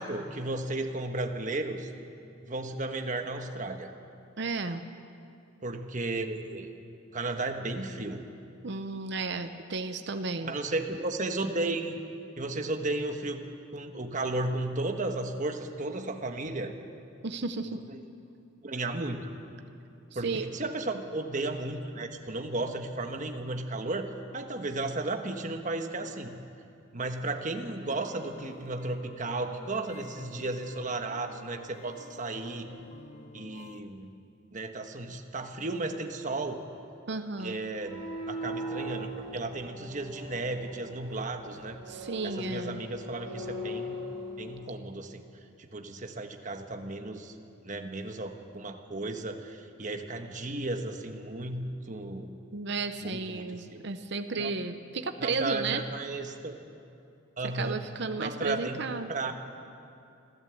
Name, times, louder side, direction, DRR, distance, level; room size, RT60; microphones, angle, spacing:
voice 1, 0.0-1.9 2.5-3.9 5.6-6.7 7.1-8.2 10.4-12.0 12.4-13.4 13.7-16.7 17.7-18.0 18.6-19.3 20.1-26.4 26.9-32.7 33.3-34.1 34.5-36.7 37.4-41.8 42.2-43.9 44.4-45.2 45.6-47.3 47.6-52.3 53.0-53.8 54.4-54.5 55.2-56.6 57.4-57.8 58.2-58.8 59.1-59.3, right 2 dB, 40° right, 5 dB, 1.3 m, -34 dB
voice 2, 4.4-4.8 8.6-10.5 17.2-17.8 20.2-20.5 37.1-37.6 41.9-42.8 52.5-55.8 57.5-59.1, right 4 dB, 60° right, 8 dB, 0.8 m, -33 dB
sound 1, 27.8-33.8, left 3 dB, 40° left, 0.7 m, -50 dB
sound 2, 37.7-44.7, equal, 5° left, 6.7 m, -39 dB
26.0 x 13.0 x 7.8 m, 2.6 s
head